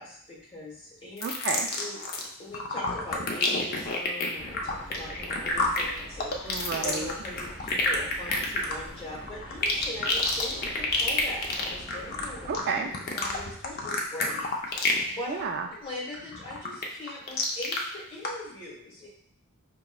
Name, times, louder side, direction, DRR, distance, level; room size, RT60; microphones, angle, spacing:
voice 1, 0.0-1.2 1.8-2.0 2.4-6.5 6.8-12.5 13.0-15.4 15.7-19.1, left 1 dB, 25° left, -5 dB, 1.3 m, -41 dB
sound 1, 1.2-2.3 2.5-15.1 15.4-15.7 16.1-17.8 18.2-18.3, left 3 dB, 45° left, 0.6 m, -29 dB
voice 2, 1.2-1.7 6.5-7.1 12.5-12.9 15.3-15.7, right 5 dB, 50° right, 4 dB, 0.3 m, -31 dB
sound 2, 4.4-12.6, equal, 5° right, 0.9 m, -45 dB
5.0 x 2.9 x 2.3 m, 0.66 s
head